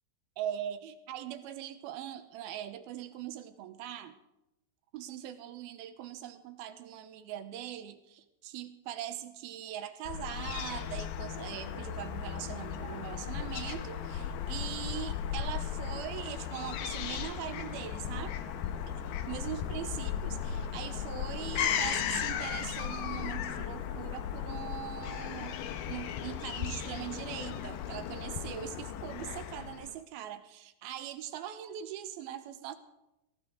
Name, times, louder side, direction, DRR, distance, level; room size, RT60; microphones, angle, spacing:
voice 1, 0.4-4.2 4.9-18.6 18.9-25.6 25.9-32.7, right 11 dB, 75° right, 9 dB, 2.5 m, -41 dB
Fowl / Gull seagull, 10.1-29.9, left 9 dB, 75° left, 2.2 m, -36 dB
17.0 x 16.5 x 3.9 m, 0.92 s
omnidirectional pair, 4.7 m